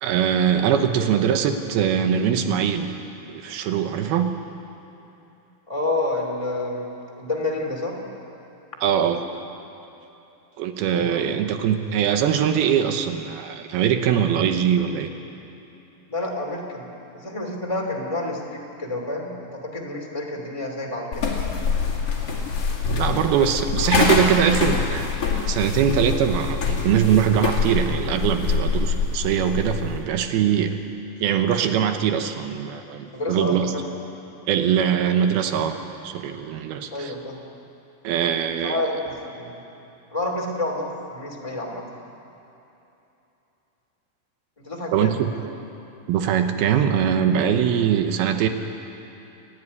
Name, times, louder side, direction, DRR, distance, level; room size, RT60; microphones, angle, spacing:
voice 1, 0.0-2.9 3.3-4.3 8.8-9.2 10.6-15.1 23.0-30.8 31.2-33.7 34.5-35.8 36.0-37.1 38.0-38.8 44.9-45.3 46.1-48.5, right 8 dB, 80° right, 7 dB, 2.8 m, -22 dB
voice 2, 5.7-8.0 10.9-11.3 16.1-21.3 33.1-33.9 36.9-37.4 38.6-39.6 40.1-41.8 44.6-45.1, left 2 dB, 10° left, -1 dB, 1.8 m, -29 dB
sound 1, 21.1-30.0, left 5 dB, 40° left, 2.8 m, -25 dB
29.0 x 10.5 x 9.7 m, 3.0 s
omnidirectional pair, 4.6 m